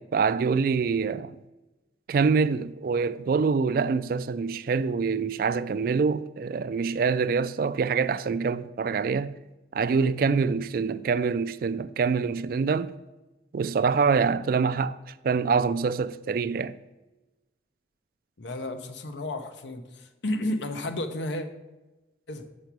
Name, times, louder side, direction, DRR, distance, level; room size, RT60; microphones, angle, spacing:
voice 1, 0.0-1.4 2.1-9.4 9.7-12.9 13.5-15.0 15.2-16.8, right 5 dB, 55° right, 0.3 m, -25 dB
voice 2, 18.4-21.5 22.3-22.5, left 1 dB, 85° left, 0.8 m, -32 dB
6.5 x 5.7 x 6.0 m
head